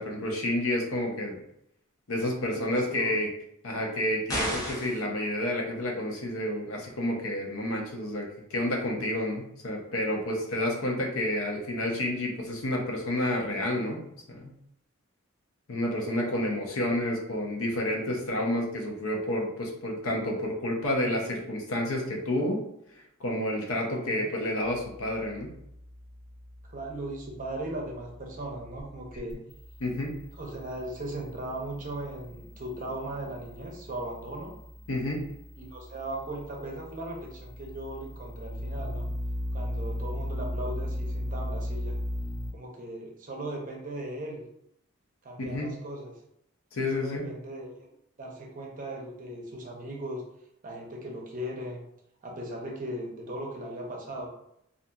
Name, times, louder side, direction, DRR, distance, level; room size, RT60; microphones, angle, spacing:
voice 1, 0.0-1.4 2.1-3.3 3.6-14.0 14.4-14.5 15.7-22.6 23.2-25.5 29.8-30.1 34.9-35.2 45.5-45.7 46.7-47.3, left 1 dB, 80° left, -1 dB, 0.6 m, -30 dB
voice 2, 2.5-3.1 16.6-16.8 23.9-24.3 26.7-29.3 30.4-34.5 35.6-39.1 39.5-42.0 42.5-44.4 45.2-46.1 46.9-47.9 48.2-50.2 50.6-51.8 52.2-54.3, right 1 dB, 40° right, -1 dB, 0.6 m, -38 dB
sound 1, 4.3-5.0, equal, 15° left, 0.5 m, -31 dB
sound 2, 24.6-42.5, left 1 dB, 65° left, 1.1 m, -38 dB
2.7 x 2.5 x 2.3 m, 0.76 s
head